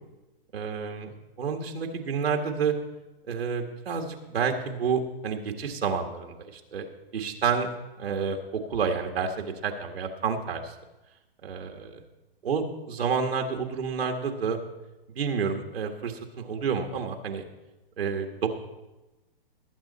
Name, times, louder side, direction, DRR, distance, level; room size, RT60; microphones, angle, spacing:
voice 1, 0.5-1.1 1.4-2.7 3.3-6.9 7.1-7.7 8.0-10.7 11.4-12.0 12.4-14.6 15.2-17.4 18.0-18.5, right 6 dB, 85° right, 3 dB, 1.7 m, -29 dB
19.5 x 8.2 x 4.2 m, 1.0 s
hypercardioid pair, 140°, 30 cm